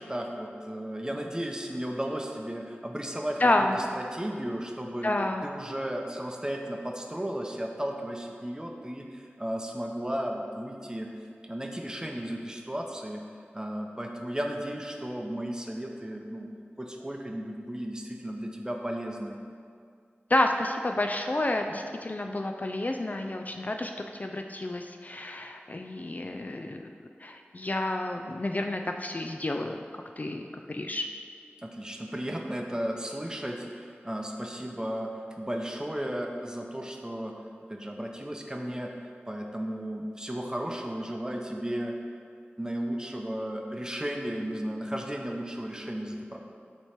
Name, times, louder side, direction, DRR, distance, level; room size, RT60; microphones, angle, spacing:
voice 1, 0.0-5.1 5.4-11.1 11.4-13.2 13.5-16.5 16.8-19.4 31.6-37.4 37.7-38.9 39.3-42.0 42.6-46.4, equal, 15° right, 1 dB, 0.7 m, -34 dB
voice 2, 3.4-3.8 5.0-5.4 20.3-26.8 27.2-29.8 30.2-30.4 30.7-31.1, left 1 dB, 40° left, 4 dB, 0.3 m, -29 dB
8.0 x 3.0 x 4.4 m, 2.3 s
wide cardioid pair, 45°, 4 cm